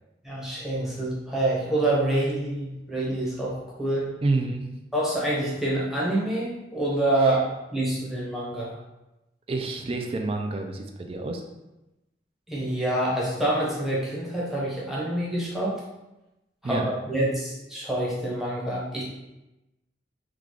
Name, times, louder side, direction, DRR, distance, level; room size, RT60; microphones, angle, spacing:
voice 1, 0.2-4.1 4.9-8.7 12.5-15.8 16.6-19.0, right 1 dB, ahead, -6 dB, 0.8 m, -27 dB
voice 2, 4.2-4.7 9.5-11.4 16.6-16.8, right 3 dB, 30° right, 4 dB, 0.3 m, -28 dB
3.2 x 2.4 x 3.7 m, 0.98 s
head